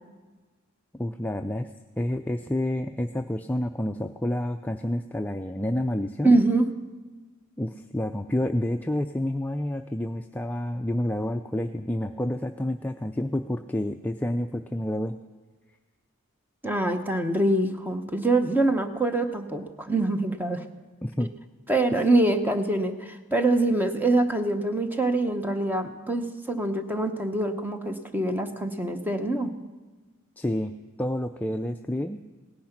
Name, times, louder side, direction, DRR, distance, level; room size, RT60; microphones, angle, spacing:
voice 1, 0.9-1.7 2.0-6.3 7.6-15.2 21.0-21.3 21.9-22.0 30.4-30.7 31.0-32.2, left 1 dB, 10° left, 6 dB, 0.3 m, -29 dB
voice 2, 6.2-6.7 16.6-20.6 21.7-29.5, right 2 dB, 10° right, 7 dB, 0.9 m, -24 dB
17.5 x 10.5 x 5.9 m, 1.3 s
head